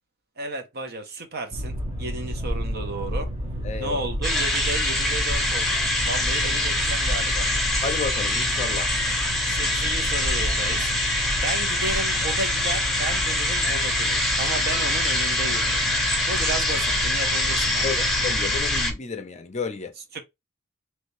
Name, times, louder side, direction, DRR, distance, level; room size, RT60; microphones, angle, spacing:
voice 1, 0.4-3.3 3.8-7.5 9.5-10.9 11.4-15.8 16.3-18.1 20.1-20.2, right 2 dB, 45° right, 0.7 m, -33 dB
Boat Water vehicle, 1.5-18.9, equal, 25° right, 1.0 m, -31 dB
voice 2, 3.6-4.0 6.3-6.6 7.8-8.9 17.8-18.0 18.2-19.9, left 5 dB, 30° left, 0.5 m, -31 dB
sound 1, 4.2-18.9, left 1 dB, ahead, 0.9 m, -24 dB
3.2 x 2.8 x 3.1 m
head